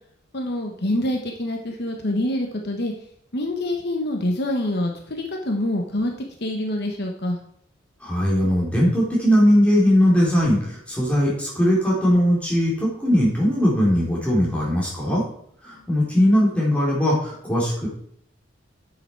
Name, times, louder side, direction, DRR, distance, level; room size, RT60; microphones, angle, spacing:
voice 1, 0.3-2.9 3.3-6.1 6.4-7.4, left 1 dB, 55° left, 2 dB, 1.2 m, -26 dB
voice 2, 8.0-15.2 15.6-17.9, equal, 5° left, -5 dB, 3.8 m, -19 dB
10.0 x 7.1 x 4.6 m, 0.68 s
head